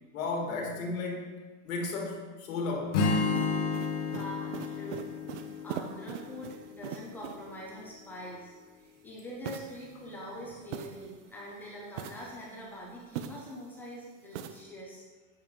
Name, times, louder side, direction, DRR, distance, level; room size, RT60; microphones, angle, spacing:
voice 1, 0.1-1.3 1.6-3.1, left 3 dB, 80° left, 0 dB, 2.1 m, -34 dB
Strum, 2.9-7.1, left 4 dB, 60° left, 1.3 m, -32 dB
sound 1, 3.0-7.6 9.4-11.4 11.9-13.7 14.3-14.6, right 9 dB, 60° right, 0.6 m, -43 dB
voice 2, 4.0-5.1 5.4-15.1, equal, 5° left, -5 dB, 0.3 m, -44 dB
7.9 x 5.3 x 3.8 m, 1.3 s
supercardioid pair, 165°, 41 cm